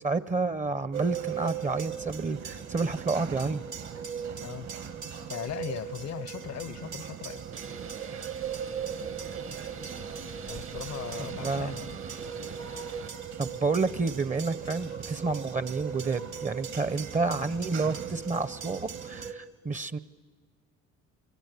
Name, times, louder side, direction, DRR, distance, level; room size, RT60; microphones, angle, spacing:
voice 1, 0.0-3.6 11.2-11.8 13.4-20.0, right 3 dB, 25° right, 0.7 m, -30 dB
sound 1, 0.9-19.3, right 7 dB, 65° right, 1.7 m, -38 dB
voice 2, 5.3-7.4 10.4-12.0, left 10 dB, 60° left, 0.8 m, -38 dB
Bird, 7.5-13.1, right 6 dB, 45° right, 1.0 m, -44 dB
28.5 x 24.5 x 8.2 m
cardioid pair, 90°, 30 cm